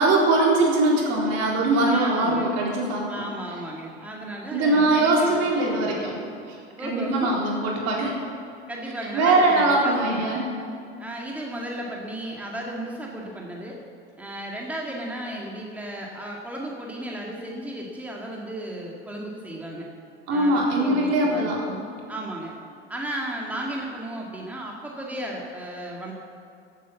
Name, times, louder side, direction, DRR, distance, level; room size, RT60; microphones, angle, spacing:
voice 1, 0.0-3.2 4.5-6.1 6.5-6.6 6.8-8.2 9.1-10.6 20.3-21.6, right 2 dB, 50° right, -3 dB, 4.0 m, -21 dB
voice 2, 1.9-2.5 3.1-6.0 6.8-7.6 8.7-10.4 11.0-13.8 14.2-19.9 20.3-22.5 22.9-26.1, right 1 dB, 5° right, -2 dB, 2.0 m, -34 dB
16.0 x 8.5 x 7.1 m, 2.4 s
figure-of-eight pair, 70°, 33 cm